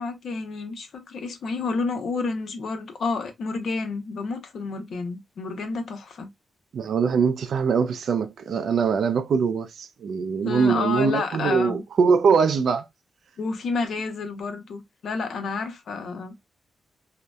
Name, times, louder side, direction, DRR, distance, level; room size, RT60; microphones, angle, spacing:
voice 1, 0.0-6.3 10.4-11.8 13.4-16.4, left 4 dB, 65° left, 0.6 m, -30 dB
voice 2, 6.7-12.9, right 5 dB, 65° right, 0.3 m, -22 dB
2.6 x 2.1 x 2.2 m
wide cardioid pair, 135°, 0 cm